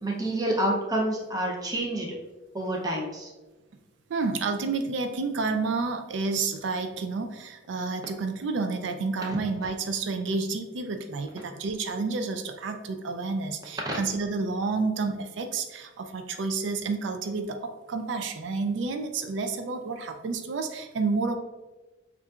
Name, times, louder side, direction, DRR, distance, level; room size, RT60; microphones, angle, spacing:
voice 1, 0.0-2.2 2.5-3.3 9.2-9.4 9.6-9.7 13.8-14.0, right 1 dB, 20° right, -1 dB, 0.6 m, -28 dB
voice 2, 4.1-21.4, right 4 dB, 80° right, 6 dB, 0.4 m, -30 dB
7.0 x 2.5 x 2.4 m, 1.2 s
head